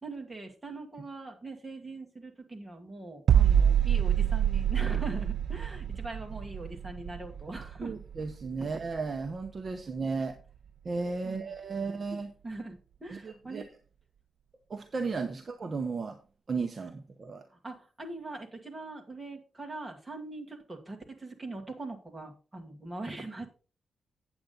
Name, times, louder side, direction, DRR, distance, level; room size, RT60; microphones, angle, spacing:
voice 1, 0.0-8.0 11.2-11.8 12.4-13.6 17.5-23.5, right 2 dB, 15° right, 2 dB, 1.8 m, -42 dB
sound 1, 3.3-9.0 9.2-9.5, right 9 dB, 65° right, 0.3 m, -26 dB
voice 2, 7.8-10.4 10.8-12.3 13.1-13.6 14.7-16.2 16.5-17.4, right 4 dB, 30° right, 6 dB, 0.8 m, -34 dB
8.6 x 8.0 x 3.9 m, 0.35 s
wide cardioid pair, 160°, 0 cm